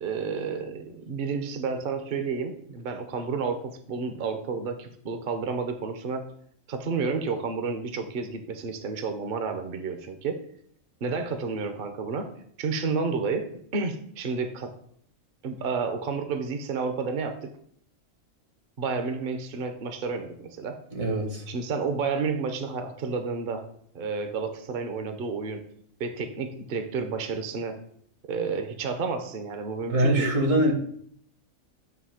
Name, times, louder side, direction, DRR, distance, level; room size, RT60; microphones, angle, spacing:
voice 1, 0.0-6.2 6.7-10.4 11.0-12.3 12.6-13.5 13.7-14.7 15.4-17.5 18.8-20.8 21.5-23.6 23.9-25.6 26.0-27.8 28.3-30.3, right 5 dB, 50° right, 7 dB, 0.7 m, -30 dB
voice 2, 20.9-21.5 29.9-30.7, right 1 dB, 70° right, 2 dB, 1.7 m, -23 dB
8.1 x 2.7 x 5.6 m, 0.64 s
omnidirectional pair, 1.4 m